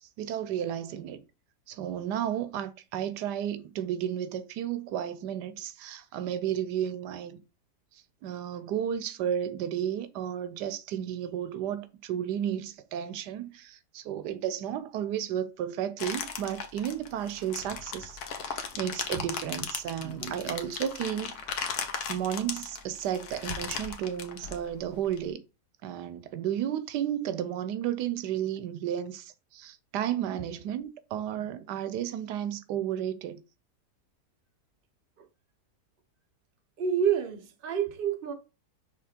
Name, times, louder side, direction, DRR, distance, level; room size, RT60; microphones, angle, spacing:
voice 1, 0.0-1.2 1.7-7.4 8.2-21.5 22.1-25.4 25.8-33.4, right 10 dB, 85° right, 1.2 m, -33 dB
sound 1, 16.0-25.2, left 6 dB, 70° left, 1.3 m, -37 dB
voice 2, 20.0-20.7 31.4-31.5 35.2-35.3 36.8-38.3, right 8 dB, 40° right, 1.0 m, -30 dB
5.8 x 3.4 x 5.0 m
omnidirectional pair, 1.7 m